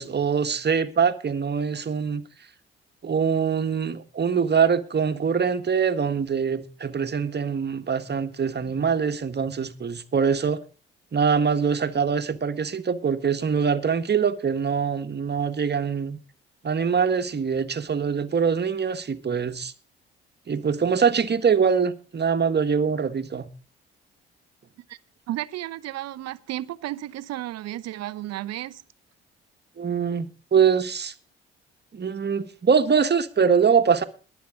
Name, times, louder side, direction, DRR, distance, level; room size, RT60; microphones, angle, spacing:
voice 1, 0.0-2.2 3.0-10.6 11.1-16.2 16.6-19.7 20.5-23.5 29.8-31.1 31.9-34.0, right 6 dB, 35° right, 1.6 m, -23 dB
voice 2, 25.3-28.8, right 14 dB, 60° right, 0.9 m, -33 dB
22.5 x 8.4 x 3.7 m
hypercardioid pair, 50°, 30 cm